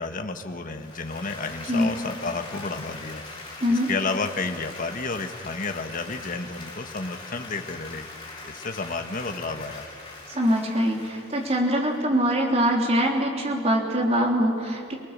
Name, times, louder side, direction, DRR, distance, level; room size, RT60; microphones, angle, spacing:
voice 1, 0.0-3.2 3.7-8.1 8.5-9.8, left 3 dB, 45° left, 6 dB, 1.5 m, -31 dB
Applause, 0.7-12.4, left 3 dB, 25° left, 6.0 m, -42 dB
voice 2, 10.3-14.9, equal, 35° right, 1 dB, 3.4 m, -23 dB
29.5 x 19.0 x 7.5 m, 2.3 s
head